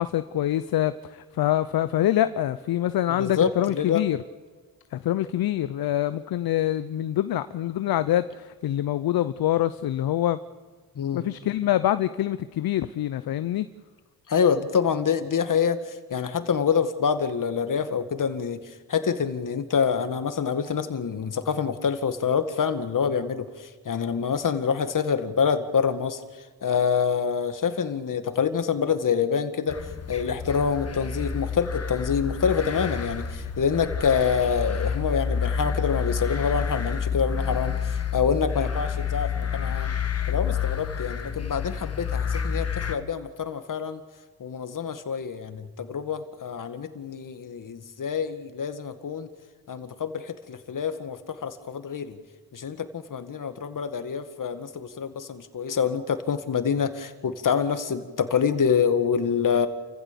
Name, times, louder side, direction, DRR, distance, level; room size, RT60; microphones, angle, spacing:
voice 1, 0.0-4.2 4.9-10.4 11.1-13.7, left 12 dB, 75° left, 0.7 m, -25 dB
voice 2, 3.1-4.0 11.0-11.2 14.3-18.6 18.9-23.5 23.9-26.2 26.6-29.8 30.1-39.9 40.3-44.0 44.4-49.3 49.7-52.2 52.5-59.7, left 6 dB, 60° left, 2.0 m, -26 dB
sound 1, 29.7-43.0, left 6 dB, 45° left, 1.7 m, -29 dB
29.0 x 15.5 x 7.0 m
cardioid pair, 60°, 36 cm